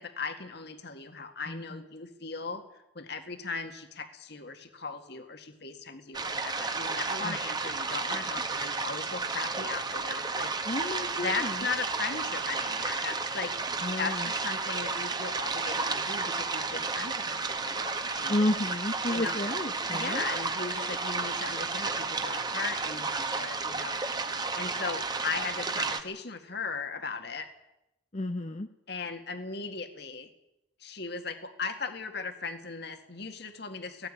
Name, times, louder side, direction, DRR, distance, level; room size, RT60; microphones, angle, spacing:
voice 1, 0.0-10.5 11.2-13.5 14.0-18.4 19.1-19.5 19.9-27.5 28.9-30.3 30.8-34.1, left 4 dB, 55° left, 7 dB, 2.0 m, -38 dB
voice 2, 1.5-1.8 7.2-7.4 10.6-11.6 13.8-14.3 18.3-20.2 28.1-28.7, left 1 dB, 35° left, 8 dB, 0.8 m, -31 dB
sound 1, 6.1-26.0, right 4 dB, 20° right, 1.4 m, -32 dB
18.5 x 16.0 x 9.8 m, 0.88 s
head